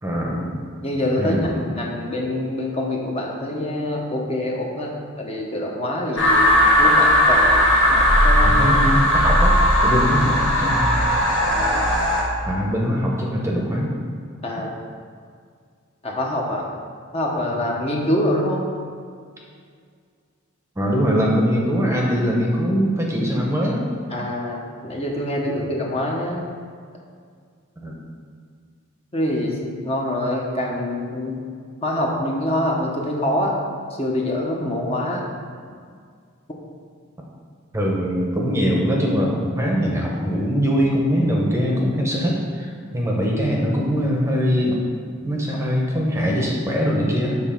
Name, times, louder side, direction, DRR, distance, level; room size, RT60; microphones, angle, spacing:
voice 1, 0.0-0.6 1.2-1.6 8.4-9.5 9.8-11.0 12.5-13.9 20.8-23.9 27.8-28.0 37.7-44.8 45.2-47.4, equal, 10° right, -2 dB, 0.9 m, -22 dB
voice 2, 0.8-8.6 11.5-11.9 14.4-14.7 16.0-16.7 17.1-18.7 24.1-24.6 24.8-26.4 29.1-31.4 31.8-33.5 33.9-35.2, left 1 dB, 25° left, -2 dB, 0.9 m, -25 dB
sound 1, 6.2-12.2, equal, 55° left, 1.4 m, -17 dB
7.5 x 4.0 x 5.8 m, 2.1 s
head